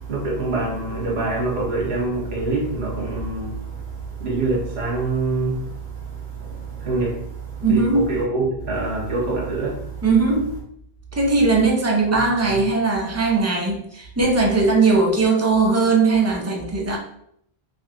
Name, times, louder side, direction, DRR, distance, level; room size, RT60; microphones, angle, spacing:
voice 1, 0.1-3.8 4.2-9.9 12.5-12.6, right 3 dB, 85° right, 1.2 m, -25 dB
voice 2, 7.6-8.1 10.0-10.5 11.1-17.0, right 3 dB, 25° right, 0.3 m, -19 dB
3.2 x 2.7 x 2.8 m
omnidirectional pair, 1.0 m